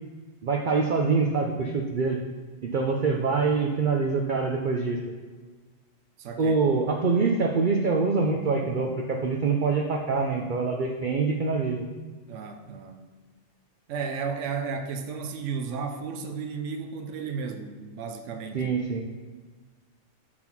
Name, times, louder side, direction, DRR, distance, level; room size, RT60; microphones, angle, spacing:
voice 1, 0.4-2.2 2.6-5.0 6.4-11.9 18.5-19.0, right 4 dB, 50° right, 0 dB, 0.7 m, -25 dB
voice 2, 6.2-6.6 12.3-13.0 13.9-18.7, right 5 dB, 80° right, 6 dB, 1.0 m, -33 dB
7.8 x 3.9 x 5.9 m, 1.4 s
omnidirectional pair, 1.2 m